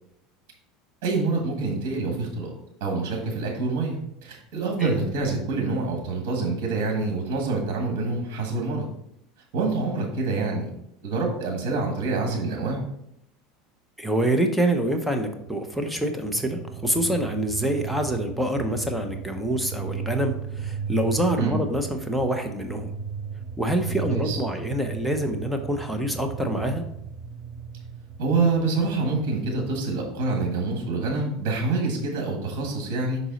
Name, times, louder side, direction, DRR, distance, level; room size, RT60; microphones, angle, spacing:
voice 1, 1.0-2.5 2.8-8.8 9.5-10.7 11.0-12.8 21.4-21.6 23.8-24.4 28.2-33.2, right 3 dB, 70° right, 1 dB, 1.5 m, -26 dB
voice 2, 14.0-22.9 23.6-26.8, right 1 dB, 5° right, 5 dB, 0.6 m, -26 dB
sound 1, 15.0-30.3, right 7 dB, 35° right, 1.8 m, -36 dB
6.0 x 4.0 x 4.0 m, 0.77 s
supercardioid pair, 125°, 0 cm